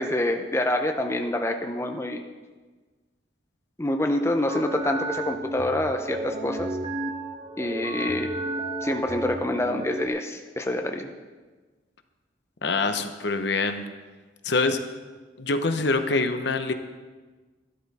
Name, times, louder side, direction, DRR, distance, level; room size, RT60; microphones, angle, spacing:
voice 1, 0.0-2.2 3.8-6.7 7.6-8.3 8.8-11.1, left 1 dB, 15° left, 4 dB, 0.6 m, -26 dB
sound 1, 4.5-10.1, right 2 dB, 25° right, 0.8 m, -32 dB
voice 2, 12.6-13.8 14.4-14.8 15.4-16.7, left 3 dB, 60° left, 8 dB, 0.9 m, -25 dB
13.5 x 12.0 x 4.2 m, 1.3 s
head